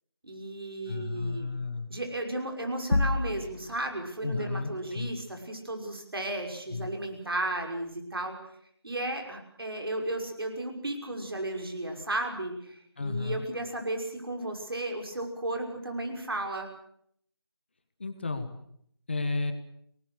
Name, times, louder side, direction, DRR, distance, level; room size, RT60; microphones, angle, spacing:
voice 1, 0.2-1.5 1.9-8.4 8.8-16.7, right 1 dB, 60° right, 3 dB, 6.1 m, -34 dB
voice 2, 0.9-1.9 4.2-5.1 6.7-6.9 13.0-13.4 18.0-18.5 19.1-19.5, left 3 dB, 25° left, 8 dB, 1.3 m, -32 dB
sound 1, 2.9-3.9, left 2 dB, 60° left, 1.6 m, -27 dB
26.5 x 19.5 x 6.6 m, 0.67 s
figure-of-eight pair, 175°, 14 cm